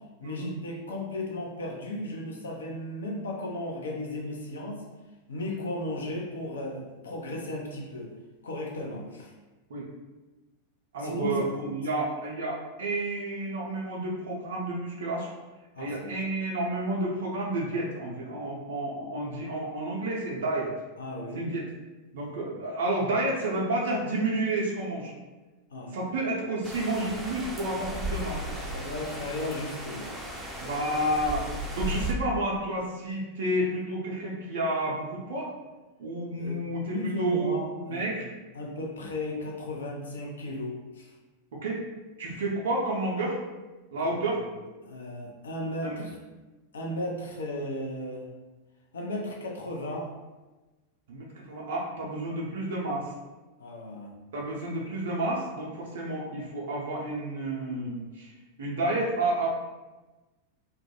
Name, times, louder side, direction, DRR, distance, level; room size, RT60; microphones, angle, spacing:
voice 1, 0.2-4.8 5.3-8.1 8.4-9.3 11.0-11.6 15.7-16.1 21.0-21.5 25.7-26.0 28.7-30.1 36.4-36.6 36.9-38.2 38.5-41.1 44.0-44.1 44.8-46.2 46.7-48.3 48.9-50.1 53.6-54.1, left 1 dB, 65° left, -1 dB, 0.5 m, -35 dB
voice 2, 10.9-15.3 15.8-20.7 21.3-21.6 22.1-25.1 25.9-28.7 30.6-35.5 36.0-38.2 41.5-41.8 42.2-43.4 43.9-44.4 45.8-46.0 51.1-53.1 54.3-58.3 58.6-59.5, right 2 dB, 60° right, -3 dB, 0.5 m, -30 dB
sound 1, 26.6-32.1, right 1 dB, 5° right, 0.5 m, -35 dB
2.2 x 2.1 x 3.0 m, 1.2 s
figure-of-eight pair, 90°, 0 cm